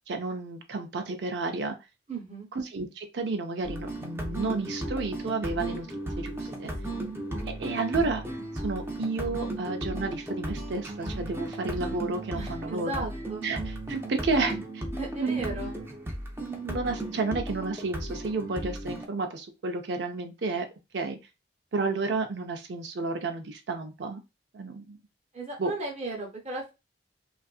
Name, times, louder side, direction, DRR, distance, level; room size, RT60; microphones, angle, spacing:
voice 1, 0.1-1.8 2.5-5.9 6.2-6.7 7.6-8.2 8.6-13.1 13.4-14.8 15.2-15.7 16.4-20.7 20.9-21.2 21.7-24.2 24.5-25.0 25.6-25.7, right 3 dB, 70° right, 5 dB, 0.5 m, -31 dB
voice 2, 2.1-2.5 6.8-7.0 12.3-13.5 15.0-15.8 25.3-26.7, right 2 dB, 35° right, 0 dB, 0.8 m, -36 dB
sound 1, 3.6-19.1, right 1 dB, 15° right, 0.4 m, -35 dB
2.6 x 2.4 x 2.3 m, 0.26 s
head